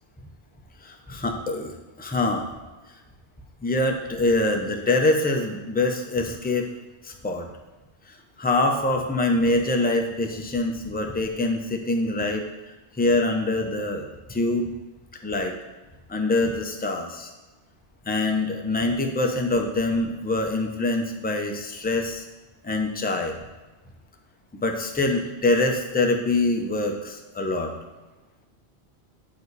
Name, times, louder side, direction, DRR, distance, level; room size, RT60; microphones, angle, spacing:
voice 1, 0.8-2.5 3.6-6.7 7.0-7.5 8.4-12.4 13.0-14.7 15.2-15.5 16.1-17.3 18.1-22.2 22.6-23.4 24.6-27.7, left 2 dB, 10° left, 2 dB, 0.6 m, -24 dB
9.2 x 4.9 x 4.1 m, 1.2 s
omnidirectional pair, 1.1 m